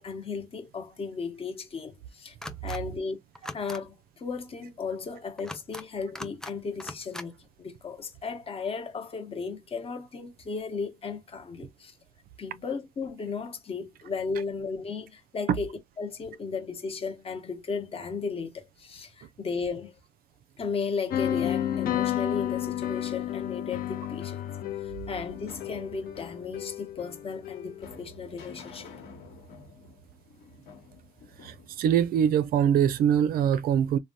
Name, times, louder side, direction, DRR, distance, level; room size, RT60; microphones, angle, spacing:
voice 1, 0.0-2.4 2.6-3.2 3.5-11.9 12.4-20.0 20.6-24.5 24.8-28.9, left 5 dB, 35° left, 0.8 m, -35 dB
sound 1, 2.4-2.8 3.3-3.8 5.4-5.8 6.1-6.5 6.8-7.3, left 1 dB, 5° left, 0.4 m, -40 dB
sound 2, 21.1-28.0, left 11 dB, 60° left, 0.6 m, -32 dB
sound 3, 25.2-32.8, left 3 dB, 75° left, 1.2 m, -50 dB
voice 2, 31.4-34.0, right 9 dB, 60° right, 0.4 m, -23 dB
3.3 x 2.2 x 2.6 m
cardioid pair, 110°, 17 cm